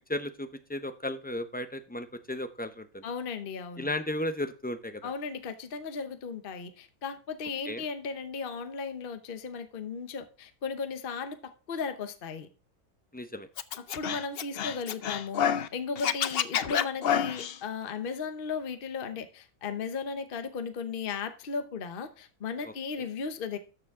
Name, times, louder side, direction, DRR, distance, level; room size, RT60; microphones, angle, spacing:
voice 1, 0.1-3.0 3.8-5.1 7.6-7.8 13.1-13.5 22.6-22.7, left 1 dB, 15° left, 0.3 m, -35 dB
voice 2, 3.0-3.9 5.0-12.5 14.0-23.6, left 5 dB, 40° left, 1.0 m, -36 dB
Scratching (performance technique), 13.6-15.7 16.0-17.6, left 9 dB, 60° left, 0.6 m, -28 dB
13.0 x 6.9 x 3.6 m
omnidirectional pair, 1.6 m